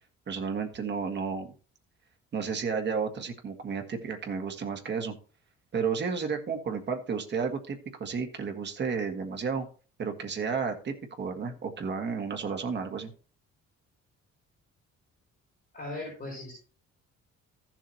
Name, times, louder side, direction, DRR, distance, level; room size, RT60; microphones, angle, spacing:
voice 1, 0.3-1.5 2.3-5.1 5.7-9.7 10.0-13.1, right 5 dB, 35° right, 4 dB, 1.7 m, -32 dB
voice 2, 15.7-16.5, left 2 dB, 30° left, -3 dB, 4.6 m, -38 dB
14.5 x 7.4 x 2.9 m, 0.39 s
cardioid pair, 165°, 29 cm